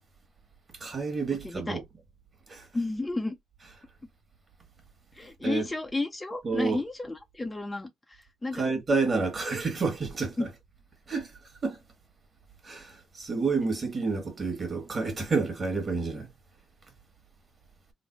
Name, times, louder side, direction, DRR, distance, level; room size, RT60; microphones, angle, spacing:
voice 1, 0.8-1.8 2.5-2.7 5.4-5.7 6.4-6.8 8.5-10.5 11.1-11.8 12.6-16.3, right 4 dB, 35° right, 1.3 m, -29 dB
voice 2, 1.4-1.8 2.7-3.4 5.1-8.7 10.4-10.5, left 2 dB, 20° left, 0.5 m, -32 dB
3.2 x 2.0 x 4.1 m
cardioid pair, 90°, 0 cm